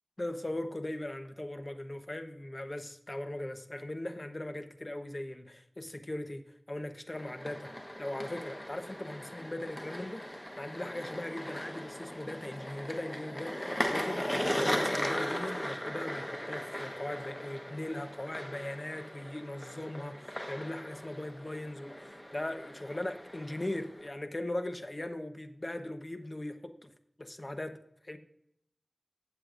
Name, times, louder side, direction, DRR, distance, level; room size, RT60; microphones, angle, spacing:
voice 1, 0.2-7.7 8.0-10.3 10.6-26.9 27.2-27.8 28.0-28.2, left 1 dB, 30° left, 8 dB, 0.9 m, -39 dB
sound 1, 7.1-24.1, equal, 15° left, 1.2 m, -38 dB
15.0 x 7.9 x 2.5 m, 0.73 s
wide cardioid pair, 70°, 0 cm